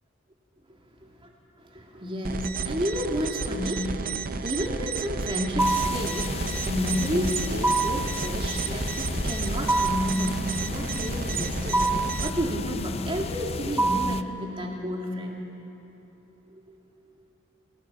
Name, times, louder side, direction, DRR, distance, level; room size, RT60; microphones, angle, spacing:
voice 1, 1.6-15.4 16.5-16.8, equal, 25° right, 0 dB, 2.5 m, -31 dB
sound 1, 2.2-12.3, right 5 dB, 45° right, 0.6 m, -32 dB
sound 2, 5.6-14.2, left 3 dB, 30° left, 0.5 m, -33 dB
sound 3, 5.6-6.1 7.6-8.1 9.7-10.2 11.7-12.2 13.8-14.3, right 3 dB, 10° right, 0.7 m, -24 dB
25.5 x 18.0 x 5.8 m, 2.9 s
head